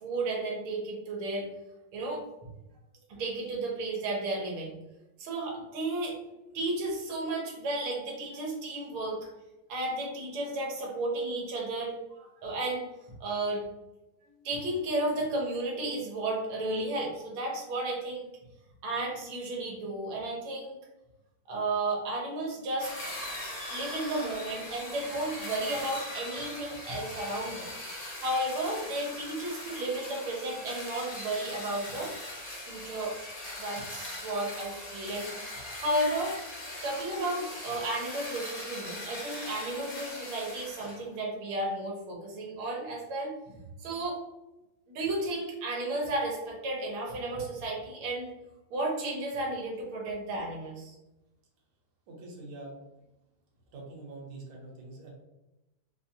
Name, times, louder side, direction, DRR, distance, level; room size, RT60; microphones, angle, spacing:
voice 1, 0.0-1.5 1.9-2.5 3.1-4.7 5.2-6.2 6.5-9.3 9.7-12.9 13.2-13.6 14.4-18.3 18.8-20.8 21.5-22.9 23.7-27.7 28.2-32.1 32.6-33.2 33.6-35.3 35.8-36.4 36.8-44.2 44.9-48.3 48.7-51.0, right 2 dB, 85° right, -2 dB, 1.7 m, -33 dB
sound 1, 22.8-41.0, left 1 dB, 40° left, 1.1 m, -40 dB
voice 2, 52.1-52.7 53.7-55.1, right 2 dB, 65° right, -3 dB, 1.5 m, -44 dB
4.2 x 2.2 x 2.7 m, 0.97 s
omnidirectional pair, 2.3 m